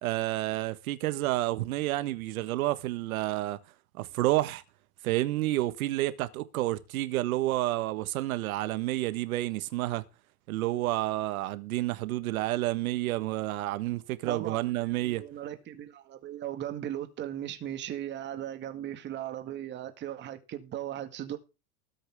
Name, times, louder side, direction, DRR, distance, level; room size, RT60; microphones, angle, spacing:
voice 1, 0.0-3.6 4.0-4.6 5.0-10.0 10.5-15.2, right 16 dB, 70° right, 1.5 m, -30 dB
voice 2, 14.2-21.4, right 11 dB, 25° right, 2.0 m, -38 dB
20.0 x 8.6 x 3.6 m
supercardioid pair, 160°, 44 cm